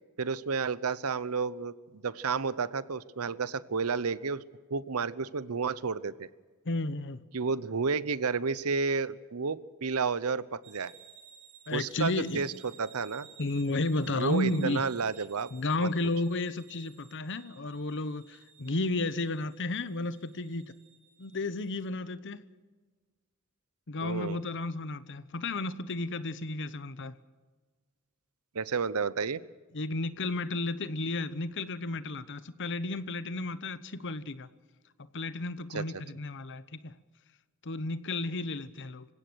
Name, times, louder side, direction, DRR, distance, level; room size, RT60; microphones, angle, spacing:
voice 1, 0.2-4.4 4.7-6.3 7.3-10.9 11.7-13.3 14.1-15.5 15.8-15.9 24.0-24.4 28.5-29.4 35.7-35.9, right 5 dB, 75° right, 0.8 m, -31 dB
voice 2, 6.6-7.2 11.7-12.5 13.4-14.9 15.5-20.7 21.2-22.4 23.9-27.1 29.7-34.5 35.1-37.0 37.6-39.1, left 2 dB, 55° left, 1.0 m, -33 dB
sound 1, 10.6-21.9, right 9 dB, 60° right, 4.2 m, -56 dB
26.5 x 17.0 x 6.3 m
head